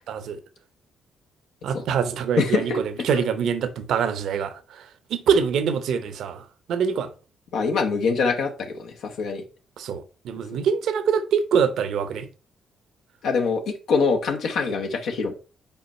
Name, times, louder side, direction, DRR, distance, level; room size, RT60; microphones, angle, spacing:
voice 1, 0.1-0.4 1.6-4.8 5.1-7.1 9.8-12.3, right 7 dB, 75° right, 0.8 m, -24 dB
voice 2, 2.4-2.8 3.1-3.2 7.5-9.4 13.2-15.3, left 4 dB, 75° left, 0.9 m, -24 dB
5.6 x 4.4 x 4.2 m
cardioid pair, 90°, 0 cm